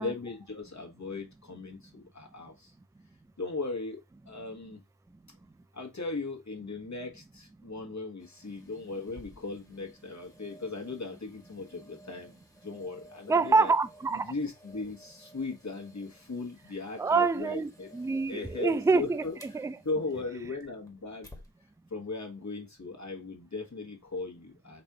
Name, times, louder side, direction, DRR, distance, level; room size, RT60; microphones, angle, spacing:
voice 1, 0.0-2.7 3.4-4.8 5.7-12.3 12.6-13.7 14.1-18.0 18.3-19.3 19.8-21.3 21.9-24.8, left 3 dB, 45° left, 1.3 m, -38 dB
sound 1, 8.2-21.5 22.0-22.1, equal, 10° left, 1.4 m, -57 dB
voice 2, 13.3-14.3 17.0-19.8, right 4 dB, 10° right, 0.4 m, -26 dB
4.1 x 2.6 x 4.7 m
cardioid pair, 45°, 39 cm